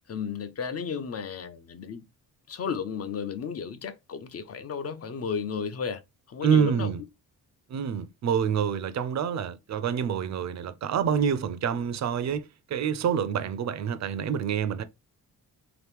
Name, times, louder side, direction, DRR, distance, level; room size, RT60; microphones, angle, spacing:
voice 1, 0.1-2.0 2.5-6.0 6.3-6.9, left 6 dB, 45° left, 0.6 m, -33 dB
voice 2, 6.4-7.0 7.7-14.8, right 7 dB, 50° right, 0.5 m, -27 dB
3.9 x 2.9 x 3.4 m
wide cardioid pair, 145°, 35 cm